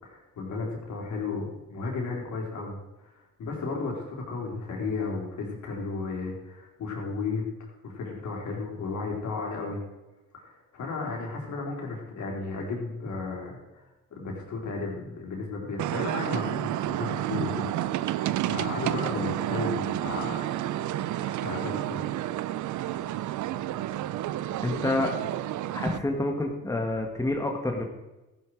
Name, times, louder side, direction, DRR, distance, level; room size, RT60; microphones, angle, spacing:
voice 1, 0.0-2.8 3.0-9.8 10.3-13.9 14.1-17.7 18.5-20.4 21.4-22.1, left 4 dB, 70° left, -1 dB, 4.2 m, -34 dB
sound 1, 15.8-26.0, right 13 dB, 75° right, 0.6 m, -30 dB
voice 2, 24.5-25.1 25.7-27.8, left 2 dB, 10° left, 2 dB, 1.7 m, -28 dB
14.0 x 10.5 x 4.7 m, 1.0 s
cardioid pair, 90°, 30 cm